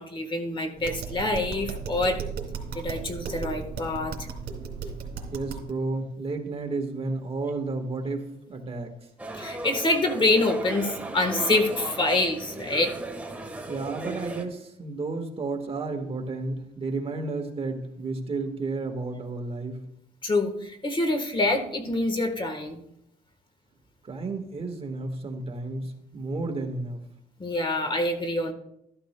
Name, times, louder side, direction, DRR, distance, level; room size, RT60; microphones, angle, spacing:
voice 1, 0.0-2.2 2.7-4.1 9.4-12.9 20.2-22.8 27.4-28.5, left 2 dB, 30° left, 5 dB, 1.3 m, -26 dB
Tap, 0.8-5.7, right 5 dB, 70° right, 2.5 m, -35 dB
voice 2, 5.3-8.9 13.7-19.8 24.0-27.0, right 3 dB, 35° right, 3 dB, 1.5 m, -32 dB
sound 1, 9.2-14.4, right 2 dB, 10° right, 1.3 m, -36 dB
13.0 x 13.0 x 2.2 m, 0.77 s
cardioid pair, 115°, 17 cm